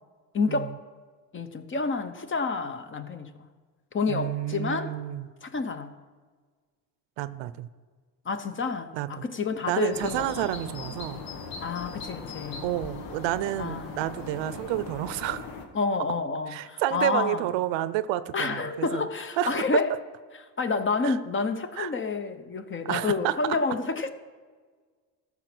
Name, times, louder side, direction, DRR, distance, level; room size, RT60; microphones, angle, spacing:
voice 1, 0.3-0.7 1.3-3.3 3.9-4.9 5.4-5.9 8.3-10.5 11.6-12.7 13.6-14.0 15.7-17.5 18.3-19.9 20.6-24.1, left 4 dB, 30° left, 10 dB, 0.8 m, -29 dB
voice 2, 4.1-5.3 7.2-7.7 8.9-9.3 9.7-11.2 12.6-15.5 16.5-19.1 19.4-19.5 21.0-21.2 21.8-21.9 22.8-23.3, right 14 dB, 85° right, 15 dB, 0.7 m, -30 dB
sound 1, 9.9-15.7, left 4 dB, 85° left, 1.4 m, -39 dB
14.0 x 5.9 x 6.0 m, 1.5 s
cardioid pair, 105°, 44 cm